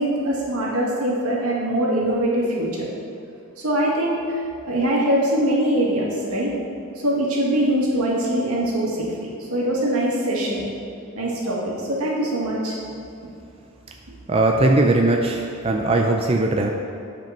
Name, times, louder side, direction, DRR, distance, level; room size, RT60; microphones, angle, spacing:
voice 1, 0.0-2.9 3.6-6.5 7.0-10.7 11.1-12.8, right 1 dB, 80° right, -4 dB, 2.1 m, -23 dB
voice 2, 14.3-16.7, right 2 dB, 25° right, 1 dB, 0.4 m, -19 dB
9.0 x 5.2 x 5.8 m, 2.6 s
head